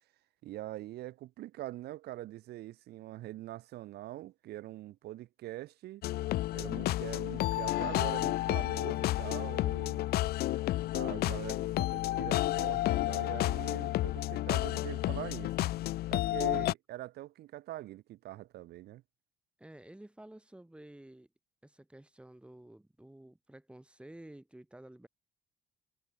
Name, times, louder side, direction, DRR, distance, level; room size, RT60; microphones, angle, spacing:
voice 1, 0.4-6.0 6.5-10.0 10.9-15.5 16.1-19.0, right 15 dB, 75° right, 2.6 m, -43 dB
sound 1, 6.0-16.7, left 16 dB, 65° left, 0.6 m, -31 dB
voice 2, 19.6-21.3 21.6-25.1, right 1 dB, 5° right, 6.6 m, -52 dB
cardioid pair, 110°, 17 cm